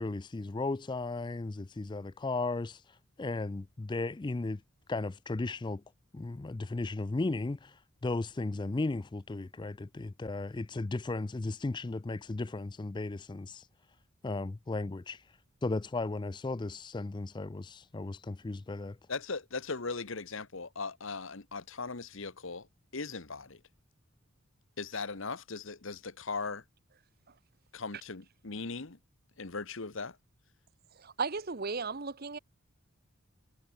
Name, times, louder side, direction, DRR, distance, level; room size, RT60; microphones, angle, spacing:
voice 1, 0.0-4.6 4.9-5.8 6.1-14.0 14.2-19.0, left 2 dB, 20° left, 0.4 m, -35 dB
voice 2, 19.1-22.7 22.9-23.6 24.8-26.6 27.7-29.0 29.4-30.2, left 4 dB, 60° left, 1.3 m, -38 dB
voice 3, 31.0-32.4, right 4 dB, 45° right, 0.9 m, -35 dB
head